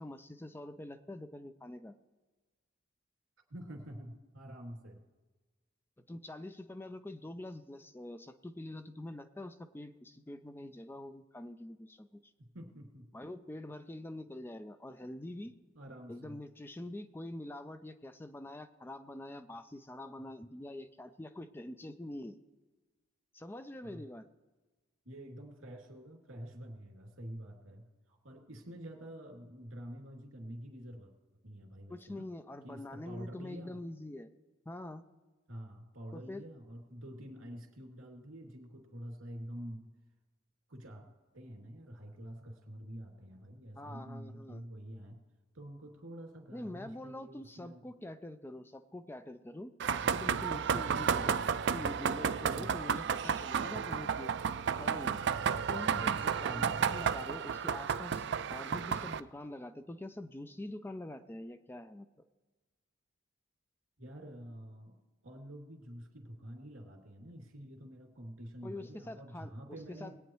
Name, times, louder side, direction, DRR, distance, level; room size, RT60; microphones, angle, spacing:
voice 1, 0.0-2.0 6.1-12.3 13.1-15.5 16.1-22.4 23.3-24.2 31.9-34.3 34.7-35.1 36.1-36.4 43.8-44.6 46.5-51.4 51.7-54.3 54.8-55.2 55.5-62.1 68.6-70.1, left 1 dB, 10° left, 9 dB, 0.4 m, -45 dB
voice 2, 3.5-5.0 12.4-13.1 15.7-16.4 23.8-24.1 25.0-31.1 31.4-32.3 32.6-33.8 35.5-39.9 40.7-41.1 41.3-45.2 45.5-47.9 50.7-50.9 52.5-52.7 56.4-56.9 64.0-65.0 65.2-70.2, equal, 85° right, 1 dB, 2.7 m, -47 dB
sound 1, 49.8-59.2, right 7 dB, 60° right, 0.4 m, -32 dB
21.0 x 9.0 x 3.1 m, 1.2 s
head